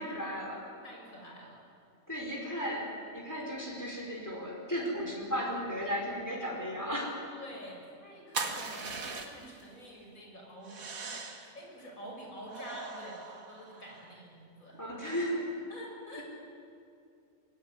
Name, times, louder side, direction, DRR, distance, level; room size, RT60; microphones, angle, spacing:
voice 1, 0.0-0.7 2.1-7.2 14.8-15.7, equal, 10° left, -1 dB, 4.4 m, -35 dB
voice 2, 0.8-1.6 7.3-14.8 15.5-16.2, equal, 75° left, -1 dB, 7.0 m, -48 dB
sound 1, 8.3-9.6 10.6-11.6 12.5-14.1, right 4 dB, 80° right, 2.3 m, -40 dB
24.0 x 20.5 x 9.8 m, 2.4 s
omnidirectional pair, 1.4 m